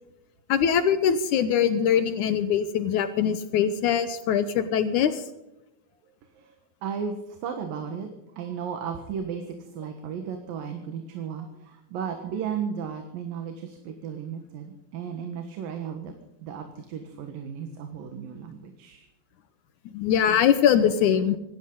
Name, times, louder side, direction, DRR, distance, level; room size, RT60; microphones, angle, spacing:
voice 1, 0.5-5.3 19.9-21.4, left 8 dB, 70° left, 11 dB, 2.2 m, -22 dB
voice 2, 6.2-6.5 6.8-8.1 8.4-19.1, right 7 dB, 90° right, 5 dB, 3.2 m, -35 dB
25.5 x 12.5 x 3.9 m, 0.94 s
omnidirectional pair, 3.9 m